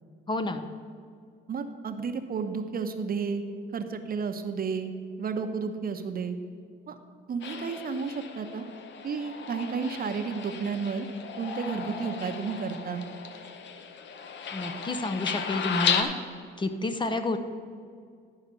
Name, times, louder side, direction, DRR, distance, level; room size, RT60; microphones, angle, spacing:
voice 1, 0.3-0.6 14.5-16.1 16.6-17.4, left 2 dB, 25° left, 7 dB, 0.7 m, -29 dB
voice 2, 1.5-3.4 3.7-4.9 5.2-6.4 6.9-7.0 7.3-8.6 9.0-11.1 11.4-13.0, right 5 dB, 50° right, 7 dB, 0.8 m, -32 dB
sound 1, 7.4-16.0, left 6 dB, 65° left, 0.8 m, -34 dB
11.0 x 4.9 x 6.8 m, 2.2 s
cardioid pair, 90°, 20 cm